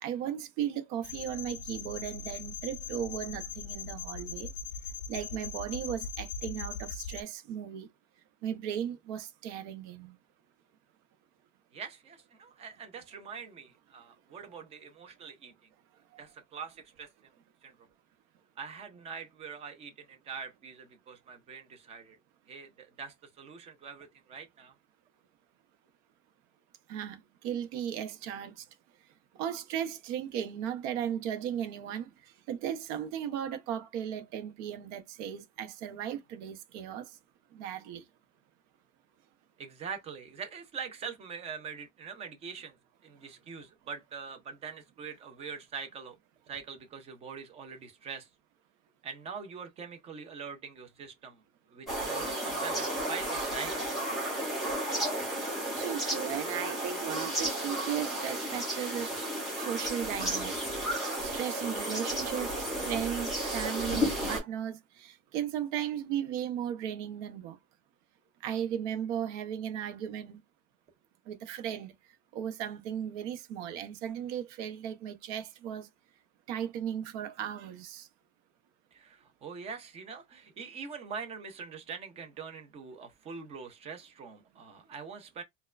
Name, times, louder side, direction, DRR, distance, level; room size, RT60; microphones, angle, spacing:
voice 1, 0.0-4.5 5.1-7.9 8.4-10.2 16.1-16.2 26.9-28.6 29.4-32.1 32.5-37.1 37.5-38.0 55.8-59.1 59.6-60.7 61.2-67.6 68.4-70.4 71.3-71.9 72.3-75.9 76.5-78.1, right 9 dB, 65° right, 0.8 m, -36 dB
sound 1, 1.0-7.2, left 6 dB, 45° left, 0.5 m, -40 dB
voice 2, 11.7-15.5 16.2-17.3 17.6-17.7 18.6-22.2 22.5-24.7 39.6-42.8 43.0-46.2 46.5-48.3 49.0-51.4 51.7-53.9 78.9-85.4, right 6 dB, 20° right, 0.3 m, -43 dB
sound 2, 51.9-64.4, right 1 dB, ahead, 1.3 m, -33 dB
4.3 x 2.2 x 2.3 m
cardioid pair, 170°, 38 cm